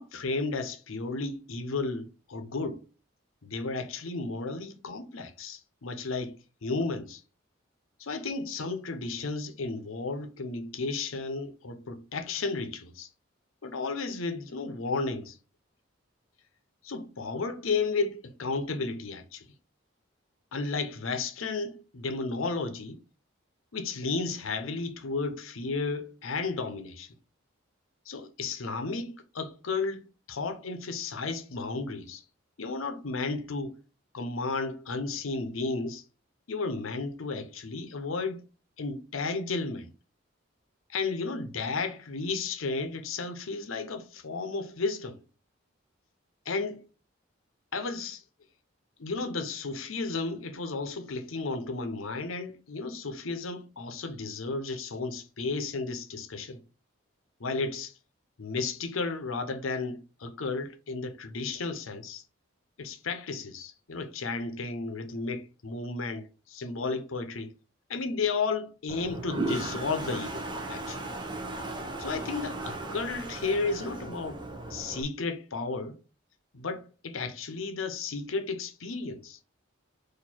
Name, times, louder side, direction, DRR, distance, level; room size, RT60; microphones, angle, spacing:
voice 1, 0.0-2.8 3.4-6.4 6.6-7.2 8.0-13.1 13.6-15.4 16.8-19.4 20.5-23.0 23.7-27.1 28.1-30.0 30.3-32.2 32.6-33.7 34.1-36.0 36.5-38.4 38.8-39.9 40.9-45.2 46.5-46.8 47.7-48.2 49.0-56.6 57.4-57.9 58.4-62.2 62.8-67.5 67.9-70.4 70.7-71.1 72.0-74.4 74.7-76.0 76.5-79.4, left 3 dB, 85° left, 0.7 m, -33 dB
Toilet flush, 68.9-75.0, right 2 dB, 20° right, 0.6 m, -36 dB
4.4 x 2.6 x 4.3 m
head